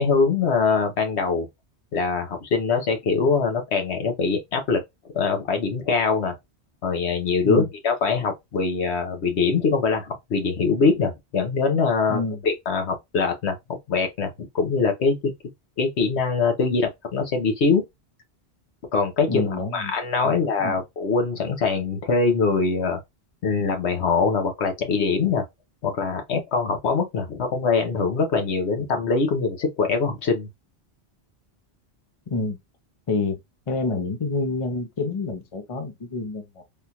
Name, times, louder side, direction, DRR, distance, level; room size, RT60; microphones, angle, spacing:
voice 1, 0.0-1.5 1.9-4.8 5.1-6.3 6.8-13.6 13.9-15.3 15.8-17.8 18.9-23.0 23.4-25.4 25.8-30.5, left 4 dB, 80° left, 1.2 m, -23 dB
voice 2, 12.1-12.4 19.3-19.9 20.2-20.8 32.3-32.6 33.1-33.4 33.7-36.6, left 3 dB, 35° left, 0.7 m, -28 dB
3.5 x 2.4 x 2.8 m
omnidirectional pair, 1.1 m